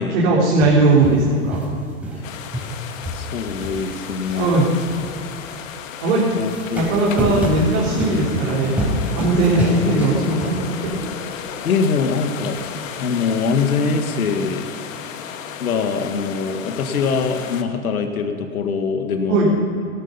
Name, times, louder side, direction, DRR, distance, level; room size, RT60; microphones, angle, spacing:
voice 1, 0.1-1.6 4.3-4.7 6.0-6.3 6.7-8.7 9.1-10.5 10.8-10.9 19.3-19.5, right 2 dB, 60° right, -6 dB, 4.1 m, -18 dB
sound 1, 0.6-2.3 2.5-5.6 6.3-11.0 11.4-11.5 12.5-12.6, equal, 5° right, 4.1 m, -28 dB
sound 2, 2.2-17.6, left 8 dB, 65° left, 1.4 m, -34 dB
voice 2, 3.1-4.6 6.4-6.9 11.6-12.6 12.9-14.7 15.6-19.5, left 5 dB, 80° left, 5 dB, 1.7 m, -23 dB
17.5 x 13.0 x 5.5 m, 2.5 s
hypercardioid pair, 115°, 43 cm